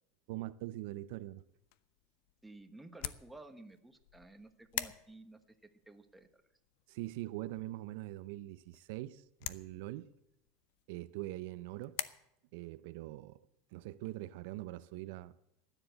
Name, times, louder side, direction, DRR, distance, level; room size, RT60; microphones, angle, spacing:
voice 1, 0.3-1.4 6.9-10.1 10.9-12.0 12.5-13.4 13.7-15.3, right 16 dB, 65° right, 0.5 m, -43 dB
sound 1, 1.5-12.1, left 15 dB, 65° left, 0.7 m, -47 dB
voice 2, 2.4-5.6 5.9-6.4, right 2 dB, 5° right, 1.1 m, -54 dB
14.5 x 10.0 x 7.9 m
supercardioid pair, 150°, 0 cm